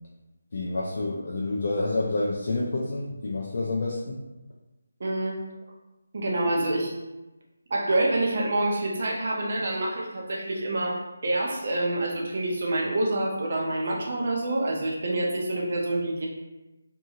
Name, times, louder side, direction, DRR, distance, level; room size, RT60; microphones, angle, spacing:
voice 1, 0.5-4.2, left 2 dB, 45° left, -3 dB, 0.3 m, -28 dB
voice 2, 5.0-5.4 6.1-7.0 7.7-16.3, right 2 dB, 40° right, -2 dB, 0.4 m, -27 dB
2.7 x 2.7 x 2.3 m, 1.0 s
figure-of-eight pair, 175°, 0 cm